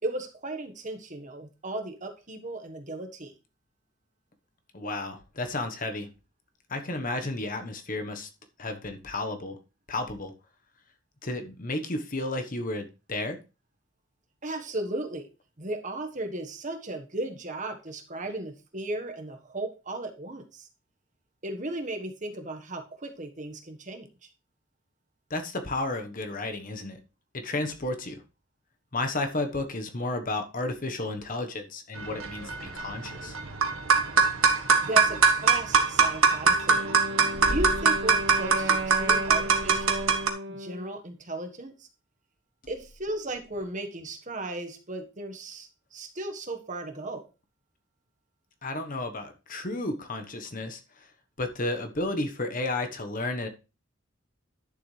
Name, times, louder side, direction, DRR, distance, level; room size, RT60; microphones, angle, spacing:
voice 1, 0.0-3.3 14.4-15.3 15.6-20.7 21.4-24.1 34.8-36.9 37.4-40.2 40.5-41.7 42.7-47.2, right 2 dB, 35° right, 5 dB, 1.4 m, -35 dB
voice 2, 4.7-6.1 6.7-8.3 8.6-9.6 9.9-10.3 11.2-13.4 25.3-27.0 27.3-28.2 28.9-33.4 48.6-50.8 51.4-53.5, left 2 dB, 40° left, 6 dB, 1.2 m, -32 dB
sound 1, 32.0-40.3, right 5 dB, 85° right, 1.4 m, -23 dB
Wind instrument woodwind instrument, 36.4-41.0, equal, 60° right, 1.3 m, -35 dB
11.0 x 7.0 x 3.3 m, 0.30 s
head